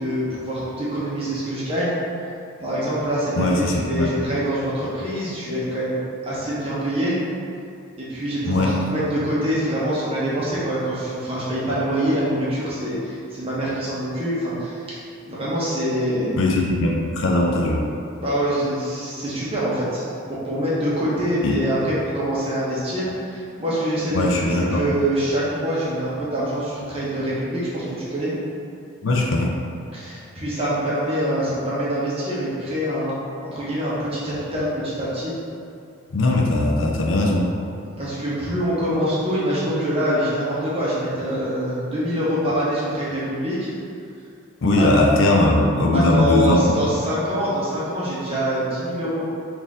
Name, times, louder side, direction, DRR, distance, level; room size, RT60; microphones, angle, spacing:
voice 1, 0.0-1.9 2.6-6.0 6.2-7.2 8.0-16.4 18.2-24.4 24.7-28.3 29.9-33.1 33.4-35.3 38.0-43.7 44.8-44.9 45.9-49.2, equal, 25° right, -9 dB, 0.9 m, -25 dB
voice 2, 3.4-4.1 8.5-8.9 16.4-17.8 21.4-21.6 24.1-24.9 29.0-29.6 36.1-37.5 44.6-46.9, left 2 dB, 65° left, -1 dB, 0.5 m, -19 dB
4.1 x 2.6 x 3.6 m, 2.5 s
head